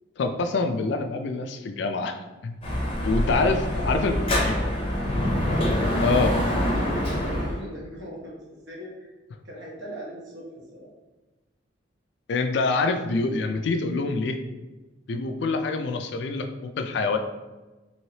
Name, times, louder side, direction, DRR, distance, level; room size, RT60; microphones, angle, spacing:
voice 1, 0.2-2.5 3.0-4.6 6.0-6.3 12.3-14.4 15.1-17.2, left 3 dB, 65° left, 6 dB, 0.4 m, -26 dB
Dog / Motorcycle, 2.6-7.6, left 1 dB, 30° left, 0.6 m, -25 dB
voice 2, 3.0-4.0 5.3-9.1 9.4-10.9, equal, 65° right, -4 dB, 1.0 m, -38 dB
3.2 x 3.0 x 2.8 m, 1.2 s
head